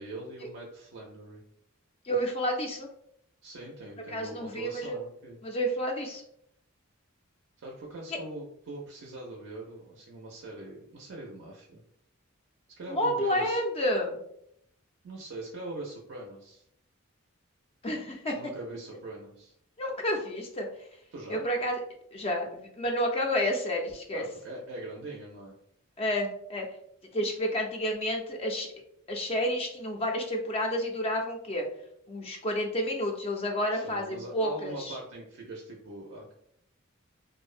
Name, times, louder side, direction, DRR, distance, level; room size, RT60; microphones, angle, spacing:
voice 1, 0.0-1.4 3.4-5.4 7.6-11.8 12.8-13.6 15.0-16.6 18.3-19.5 21.1-21.5 24.1-25.5 33.7-36.3, right 2 dB, 60° right, -1 dB, 0.4 m, -42 dB
voice 2, 2.0-2.9 4.1-5.0 5.4-6.2 12.9-14.2 17.8-18.5 19.8-20.7 21.3-21.8 22.1-24.2 26.0-26.7 27.1-28.7 29.1-31.7 32.1-35.0, equal, 25° left, 2 dB, 0.3 m, -30 dB
2.5 x 2.0 x 2.4 m, 0.72 s
head